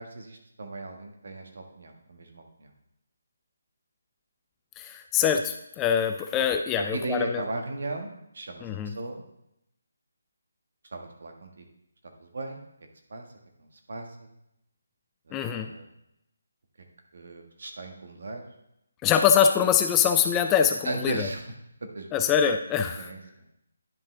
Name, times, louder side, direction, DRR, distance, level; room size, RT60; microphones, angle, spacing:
voice 1, 0.0-2.7 6.8-9.2 10.8-11.7 12.2-12.6 13.1-13.3 13.6-14.3 15.3-15.9 17.1-18.4 20.8-21.4 21.8-22.2 23.0-23.5, right 2 dB, 65° right, 3 dB, 1.6 m, -37 dB
voice 2, 4.8-7.4 8.6-9.0 15.3-15.7 19.0-21.3 22.1-23.1, left 8 dB, 15° left, 7 dB, 0.4 m, -24 dB
10.5 x 5.4 x 3.4 m, 0.80 s
figure-of-eight pair, 160°, 0 cm